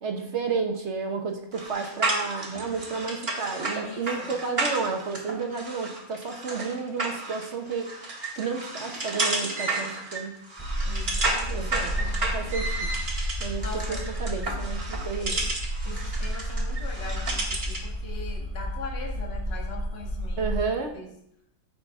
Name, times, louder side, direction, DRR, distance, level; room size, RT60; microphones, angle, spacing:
voice 1, 0.0-10.4 11.3-12.9 13.4-15.4 20.4-20.9, right 5 dB, 50° right, 4 dB, 1.2 m, -32 dB
sound 1, 1.5-17.9, right 2 dB, 30° right, 1.7 m, -32 dB
voice 2, 3.8-4.3 10.8-11.7 13.6-14.0 15.2-15.5 15.8-20.6 20.9-21.1, left 3 dB, 40° left, 0 dB, 1.8 m, -41 dB
sound 2, 10.6-20.6, equal, 10° left, 2.6 m, -31 dB
14.5 x 5.8 x 3.6 m, 0.73 s
omnidirectional pair, 1.7 m